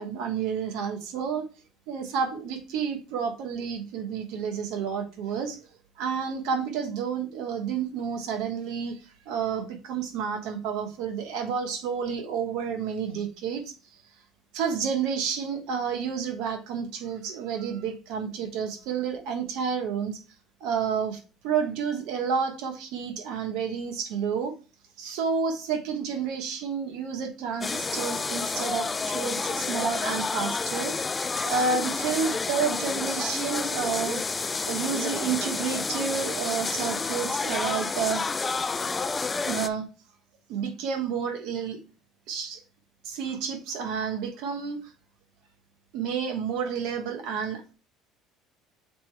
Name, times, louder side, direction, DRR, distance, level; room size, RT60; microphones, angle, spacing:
voice 1, 0.0-1.5 1.9-5.6 6.0-13.7 14.5-20.2 20.6-24.5 25.0-34.2 34.7-38.2 39.4-39.8 40.5-41.8 42.3-42.6 43.0-44.9 45.9-47.7, right 6 dB, 75° right, 6 dB, 1.3 m, -30 dB
sound 1, 27.6-39.7, left 4 dB, 20° left, 0.4 m, -29 dB
6.8 x 4.4 x 3.3 m, 0.34 s
cardioid pair, 115°, 0 cm